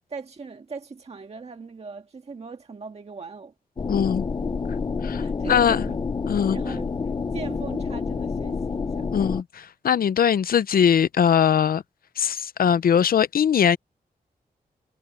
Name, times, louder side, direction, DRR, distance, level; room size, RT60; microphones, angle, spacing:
voice 1, 0.1-3.5 5.2-6.0 6.5-9.1, right 4 dB, 40° right, 1.7 m, -39 dB
sound 1, 3.8-9.4, left 5 dB, 30° left, 0.4 m, -28 dB
voice 2, 3.9-4.3 5.0-5.8 6.3-6.6 9.1-11.8 12.2-13.8, left 8 dB, 70° left, 0.6 m, -21 dB
wide cardioid pair, 135°, 16 cm